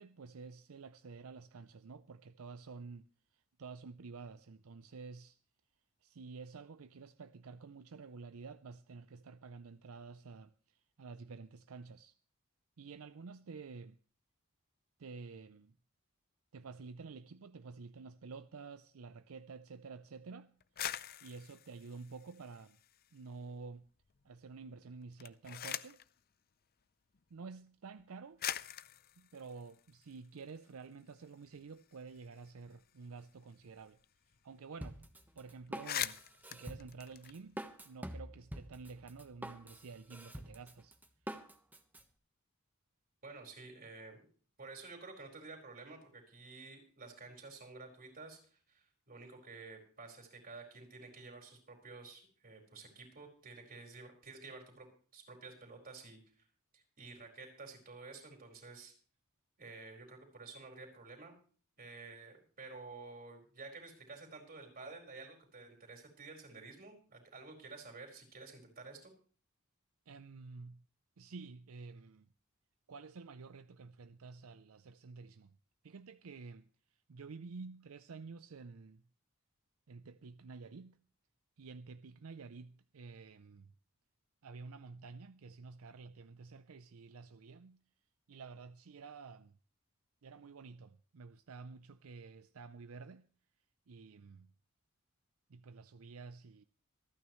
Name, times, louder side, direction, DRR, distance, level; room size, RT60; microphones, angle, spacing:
voice 1, 0.0-3.0 3.3-5.4 6.0-12.1 12.8-14.0 15.0-15.7 16.5-20.5 21.2-22.8 23.1-23.9 24.2-26.0 27.3-28.4 29.2-34.0 34.4-35.1 35.4-37.6 37.9-41.0 70.1-70.8 71.2-72.3 72.9-75.5 75.8-79.0 79.9-81.0 81.6-83.7 84.4-87.8 88.3-89.6 90.2-93.3 93.9-94.5 95.5-96.6, right 4 dB, 80° right, 0.6 m, -50 dB
sound 1, 20.6-23.2 23.5-24.2 25.0-26.1 27.1-27.2 28.0-28.1 28.4-30.7 31.1-31.2 31.4-34.0 34.3-34.4 34.7-35.0 35.3-35.4 35.7-37.9, left 11 dB, 45° left, 0.6 m, -44 dB
Drum kit, 34.8-42.0, right 1 dB, 10° right, 1.1 m, -47 dB
voice 2, 43.2-44.2 44.6-54.9 55.1-56.2 56.7-58.9 59.6-61.3 61.8-69.1, right 3 dB, 45° right, 4.6 m, -51 dB
26.0 x 9.5 x 3.1 m
head